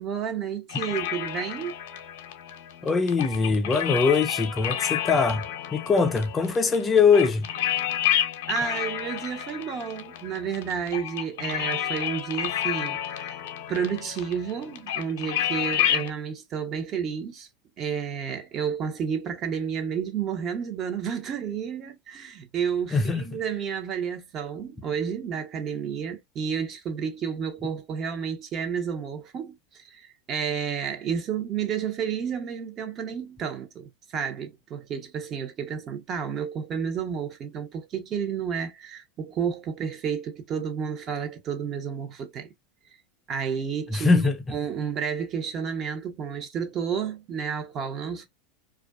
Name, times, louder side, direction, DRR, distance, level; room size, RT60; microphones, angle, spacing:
voice 1, 0.0-1.7 8.5-13.4 13.7-17.5 17.8-42.5 43.3-44.2 44.5-48.3, right 7 dB, 40° right, 0.8 m, -31 dB
sound 1, 0.7-16.1, left 11 dB, 70° left, 0.6 m, -30 dB
voice 2, 2.8-5.4 5.7-7.5 22.9-23.2 43.9-44.4, left 5 dB, 25° left, 0.5 m, -22 dB
2.4 x 2.2 x 2.3 m
hypercardioid pair, 105°, 0 cm